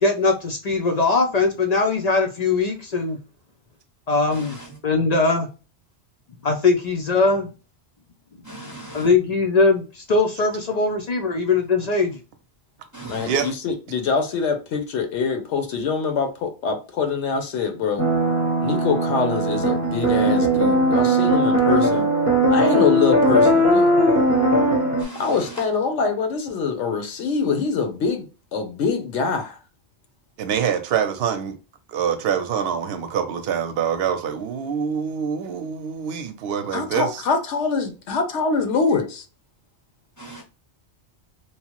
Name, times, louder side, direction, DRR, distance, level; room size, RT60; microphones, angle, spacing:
voice 1, 0.0-3.2 4.1-4.6 4.8-5.5 6.4-7.5 8.9-12.2, left 3 dB, 60° left, 0.4 m, -20 dB
voice 2, 4.3-4.8 8.4-9.1 12.9-13.5 25.0-25.6 40.2-40.4, right 2 dB, 20° right, 0.6 m, -38 dB
voice 3, 13.1-18.1 18.6-22.1 22.5-23.9 25.2-28.3 28.5-29.6 36.7-39.2, left 5 dB, 80° left, 0.9 m, -24 dB
sound 1, 18.0-25.0, right 1 dB, 15° left, 0.7 m, -19 dB
voice 4, 30.4-31.6 31.9-37.2, right 7 dB, 65° right, 0.8 m, -25 dB
3.0 x 2.0 x 2.9 m
omnidirectional pair, 1.2 m